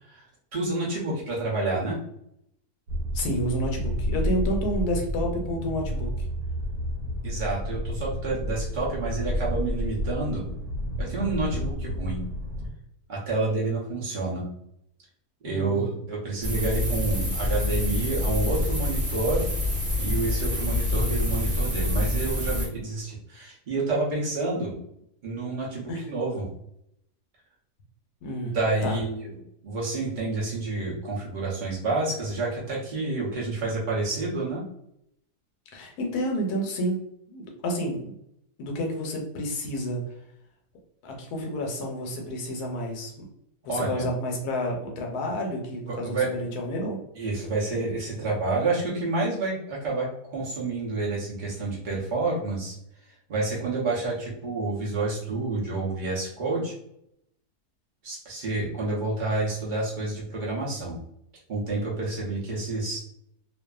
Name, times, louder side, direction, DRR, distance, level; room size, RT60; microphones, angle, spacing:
voice 1, 0.5-2.0 7.2-10.4 11.0-12.2 13.1-14.4 15.4-19.5 20.0-24.8 25.2-26.5 28.5-29.3 29.6-34.6 43.7-44.1 45.9-46.3 47.2-52.7 53.3-56.7 58.0-61.0 61.5-63.0, right 3 dB, 85° right, -5 dB, 0.4 m, -29 dB
sound 1, 2.9-12.7, equal, 65° right, 1.0 m, -30 dB
voice 2, 3.1-6.3 15.5-15.9 25.9-26.1 28.2-28.6 28.8-29.0 35.7-38.1 38.6-40.0 41.0-43.3 43.6-47.0, equal, 75° left, 1 dB, 1.1 m, -30 dB
sound 2, 16.4-22.7, left 1 dB, 35° right, 0.7 m, -26 dB
2.6 x 2.3 x 2.3 m, 0.77 s
omnidirectional pair, 1.7 m